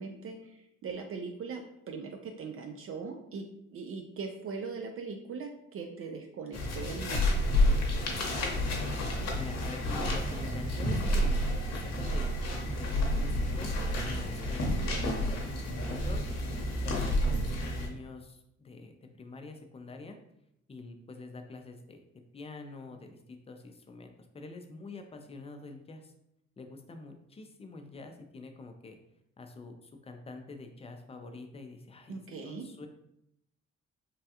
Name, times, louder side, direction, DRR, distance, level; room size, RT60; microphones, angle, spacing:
voice 1, 0.0-3.5 3.7-7.3 32.1-32.7, right 5 dB, 45° right, 4 dB, 0.4 m, -40 dB
sound 1, 6.5-17.9, left 1 dB, 60° left, 0.8 m, -30 dB
voice 2, 9.2-11.4 11.7-12.4 12.6-16.2 16.8-20.2 20.7-22.0 22.3-26.1 26.6-29.0 29.4-32.9, left 3 dB, 20° left, 5 dB, 0.4 m, -46 dB
3.3 x 2.3 x 2.8 m, 0.79 s
cardioid pair, 90°, 30 cm